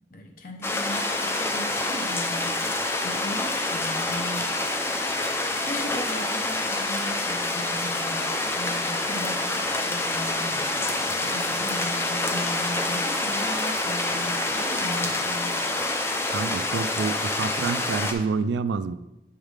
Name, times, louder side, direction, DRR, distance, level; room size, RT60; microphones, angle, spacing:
voice 1, 0.1-8.3 8.6-15.6, equal, 50° left, 3 dB, 0.9 m, -38 dB
sound 1, 0.6-18.1, left 2 dB, 15° left, 0.5 m, -27 dB
voice 2, 16.3-18.9, right 4 dB, 85° right, 14 dB, 0.3 m, -28 dB
7.2 x 3.6 x 4.9 m, 0.95 s
head